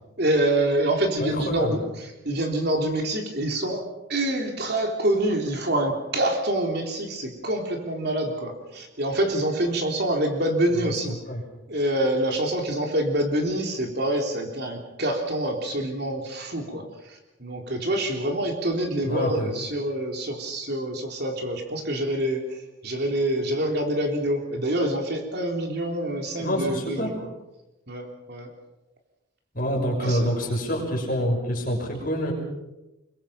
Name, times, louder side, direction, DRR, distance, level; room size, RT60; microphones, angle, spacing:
voice 1, 0.2-3.8 4.1-11.2 11.7-16.8 17.1-22.6 22.8-27.1 27.9-28.5 30.0-30.3, right 1 dB, 50° right, 2 dB, 3.6 m, -26 dB
voice 2, 1.2-1.8 10.7-11.4 19.0-19.5 26.4-27.1 29.5-32.3, equal, 40° left, 0 dB, 6.4 m, -27 dB
25.0 x 23.0 x 5.8 m, 0.98 s
head